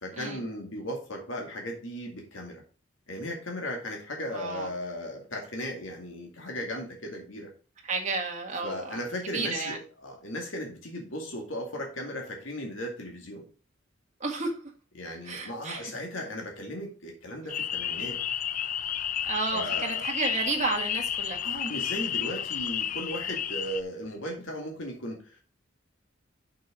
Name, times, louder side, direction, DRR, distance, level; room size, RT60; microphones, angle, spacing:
voice 1, 0.0-2.6 3.1-7.5 8.6-13.5 15.0-18.2 19.5-20.1 21.4-25.4, equal, 85° left, 1 dB, 2.1 m, -36 dB
voice 2, 4.3-4.7 7.8-9.0 9.3-9.8 14.2-14.5 15.2-15.9 19.3-21.4, right 3 dB, 40° right, 1 dB, 1.9 m, -31 dB
sound 1, 17.5-23.8, left 9 dB, 40° left, 0.4 m, -31 dB
6.3 x 5.9 x 5.0 m, 0.36 s
head